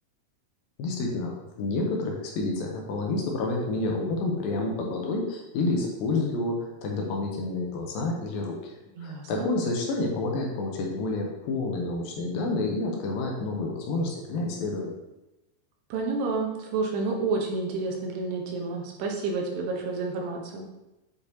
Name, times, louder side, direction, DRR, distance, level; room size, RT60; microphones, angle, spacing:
voice 1, 0.8-15.0, left 2 dB, 75° left, 0 dB, 2.4 m, -29 dB
voice 2, 9.0-9.5 15.9-20.6, right 3 dB, 90° right, 0 dB, 3.1 m, -30 dB
8.1 x 5.1 x 2.8 m, 0.96 s
omnidirectional pair, 4.5 m